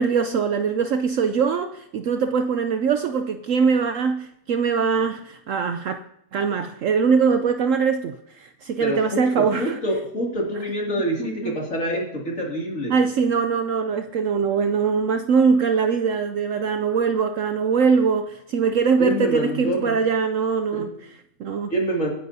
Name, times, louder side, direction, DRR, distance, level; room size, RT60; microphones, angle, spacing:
voice 1, 0.0-6.0 6.3-9.8 11.2-11.6 12.9-21.7, right 5 dB, 65° right, 9 dB, 0.9 m, -22 dB
voice 2, 8.8-9.2 9.6-12.9 19.0-19.9 20.7-20.8 21.7-22.1, equal, 55° left, -2 dB, 2.8 m, -26 dB
23.5 x 10.0 x 2.7 m, 0.78 s
omnidirectional pair, 1.6 m